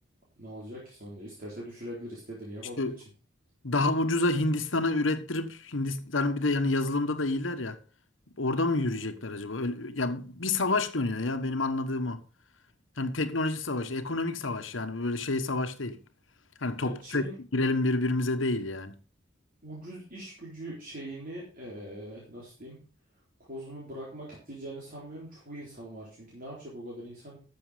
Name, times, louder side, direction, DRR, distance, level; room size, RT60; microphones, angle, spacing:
voice 1, 0.4-2.9 16.8-17.3 19.6-22.8 23.4-27.4, right 1 dB, 45° right, 3.9 m, -42 dB
voice 2, 3.6-7.8 8.4-12.2 13.0-16.0 16.6-17.2 17.5-19.0, left 2 dB, 75° left, 1.3 m, -28 dB
13.0 x 7.0 x 5.0 m
head